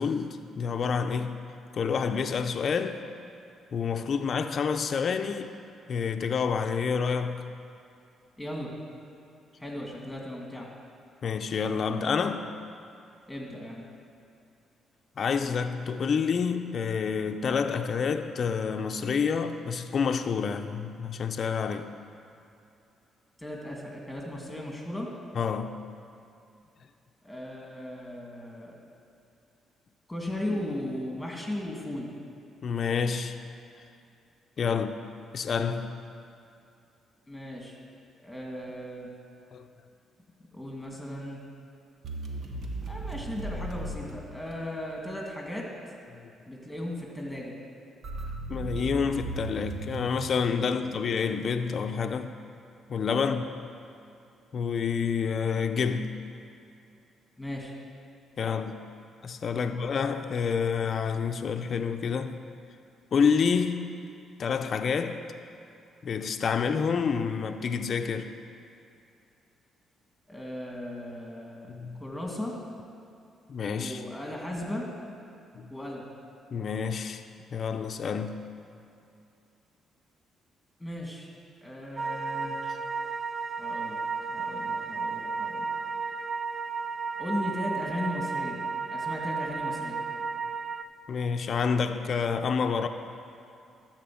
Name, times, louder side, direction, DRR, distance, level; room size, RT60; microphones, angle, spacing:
voice 1, 0.0-1.4 1.7-3.0 3.7-5.5 5.9-7.5 11.2-12.5 15.2-21.9 25.3-25.8 32.6-33.4 34.6-34.9 35.3-36.0 39.5-39.7 46.1-46.5 48.5-52.3 52.9-53.4 54.5-56.1 58.4-58.8 59.2-62.4 63.1-63.9 64.4-65.2 66.0-68.3 71.7-72.0 73.5-74.0 75.5-75.7 76.5-77.2 77.5-78.4 91.1-92.9, left 6 dB, 50° left, 7 dB, 0.6 m, -28 dB
voice 2, 8.4-8.7 9.6-10.7 13.3-13.9 23.4-25.1 27.2-28.8 30.1-32.1 34.7-34.9 37.3-37.8 38.2-39.1 40.5-41.4 42.9-45.7 46.5-47.5 50.7-50.8 53.2-53.4 57.4-57.7 58.4-58.6 59.6-59.7 70.3-71.7 72.0-72.5 73.8-74.9 75.7-76.1 80.8-81.3 81.6-82.7 83.6-84.0 84.3-85.7 87.2-88.6 88.9-90.0, left 1 dB, 5° left, -1 dB, 2.4 m, -36 dB
sound 1, 42.0-45.0 48.0-51.5, right 2 dB, 55° right, 1.0 m, -37 dB
sound 2, 82.0-90.8, right 5 dB, 30° right, 0.4 m, -33 dB
13.0 x 4.5 x 7.7 m, 2.6 s
cardioid pair, 90°, 0 cm